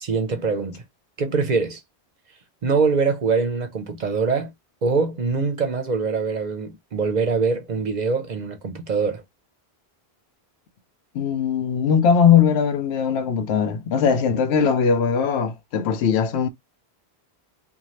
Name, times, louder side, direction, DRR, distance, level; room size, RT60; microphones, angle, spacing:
voice 1, 0.0-0.8 1.2-1.8 2.6-4.5 4.8-9.2, right 4 dB, 50° right, 0.7 m, -23 dB
voice 2, 11.1-16.5, left 7 dB, 85° left, 0.9 m, -20 dB
2.6 x 2.2 x 3.1 m
omnidirectional pair, 1.1 m